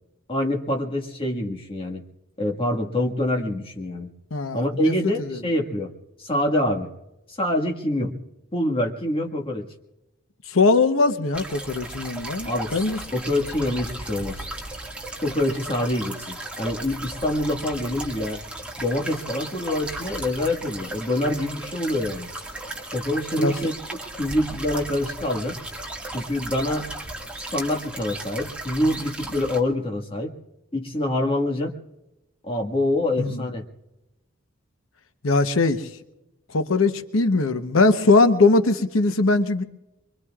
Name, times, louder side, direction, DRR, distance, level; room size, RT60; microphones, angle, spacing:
voice 1, 0.3-2.0 2.4-4.1 4.5-5.9 6.2-6.9 7.4-8.1 8.5-9.7 12.4-12.7 13.1-14.5 15.2-18.4 18.8-22.3 22.9-23.7 24.2-25.6 26.1-26.9 27.5-30.3 30.7-31.8 32.4-33.7, left 1 dB, 25° left, 2 dB, 1.7 m, -25 dB
voice 2, 4.3-5.4 10.5-13.0 23.4-23.5 33.2-33.5 35.2-35.9 36.5-39.6, left 3 dB, 75° left, 9 dB, 1.0 m, -21 dB
sound 1, 11.3-29.6, right 1 dB, 5° right, 1.9 m, -36 dB
24.0 x 24.0 x 2.4 m, 0.94 s
head